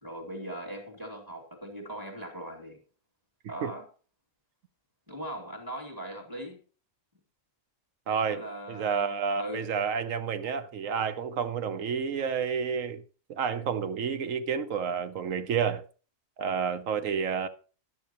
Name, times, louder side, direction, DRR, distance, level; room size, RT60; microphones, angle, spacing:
voice 1, 0.0-2.8 3.5-3.9 5.1-6.6 8.3-9.7, right 1 dB, 15° right, 2.6 m, -40 dB
voice 2, 8.1-8.4 8.7-13.0 13.3-15.8 16.4-17.5, right 6 dB, 80° right, 1.2 m, -30 dB
13.5 x 10.5 x 3.0 m
omnidirectional pair, 1.4 m